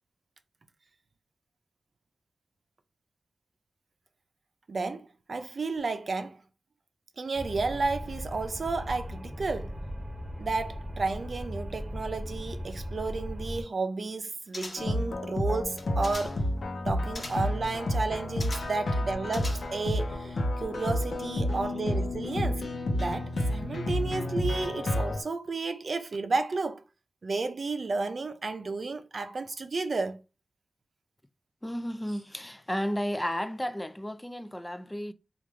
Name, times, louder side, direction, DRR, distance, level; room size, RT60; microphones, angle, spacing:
voice 1, 4.7-6.4 7.2-9.8 10.4-16.4 16.9-22.6 22.9-26.8 27.2-30.2, right 3 dB, 60° right, 0.5 m, -32 dB
sound 1, 7.3-13.6, equal, 10° right, 0.9 m, -38 dB
sound 2, 14.5-15.0 15.7-16.5 17.1-17.6 18.4-18.9 19.3-19.9 20.3-20.4, left 2 dB, 45° left, 1.0 m, -42 dB
sound 3, 14.8-25.2, left 1 dB, 75° left, 0.8 m, -30 dB
voice 2, 31.6-35.1, equal, 15° left, 0.3 m, -33 dB
3.5 x 2.5 x 3.1 m
cardioid pair, 60°, 0 cm